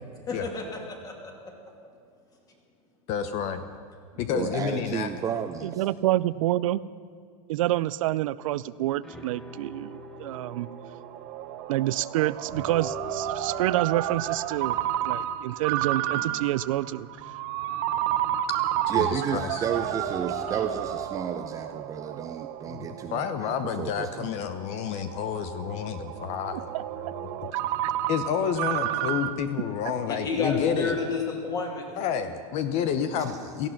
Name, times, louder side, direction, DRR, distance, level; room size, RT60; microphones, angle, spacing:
voice 1, 0.3-1.3 30.1-31.8, left 4 dB, 20° left, 1 dB, 2.7 m, -30 dB
voice 2, 3.1-3.7 4.2-5.1 18.9-19.6 22.7-26.7 27.2-27.3 28.1-30.9 32.0-33.7, left 7 dB, 35° left, 10 dB, 0.8 m, -29 dB
voice 3, 4.3-5.9 18.9-24.4 33.1-33.5, right 8 dB, 20° right, 6 dB, 0.5 m, -32 dB
voice 4, 5.6-6.8 7.5-10.7 11.7-14.8 15.0-17.1 26.5-26.8 27.8-27.9 29.8-29.9, right 15 dB, 65° right, 17 dB, 0.4 m, -28 dB
sound 1, 8.7-8.8 9.0-12.2 12.5-21.1, left 3 dB, 5° left, 1.1 m, -45 dB
Ringtone, 9.6-29.3, right 12 dB, 45° right, 1.0 m, -31 dB
17.5 x 14.5 x 5.9 m, 2.4 s
supercardioid pair, 145°, 19 cm